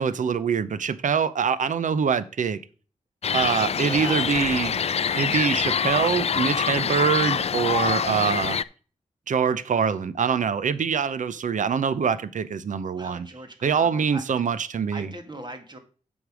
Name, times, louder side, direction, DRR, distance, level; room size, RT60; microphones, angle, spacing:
voice 1, 0.0-2.6 3.3-4.8 5.1-8.6 9.3-13.3 13.6-15.1, right 6 dB, 75° right, 0.7 m, -24 dB
sound 1, 3.2-8.6, left 7 dB, 55° left, 0.4 m, -25 dB
voice 2, 3.7-4.3 13.0-14.2 14.9-15.8, right 1 dB, 35° right, 1.9 m, -39 dB
8.1 x 5.3 x 6.2 m
wide cardioid pair, 90°, 13 cm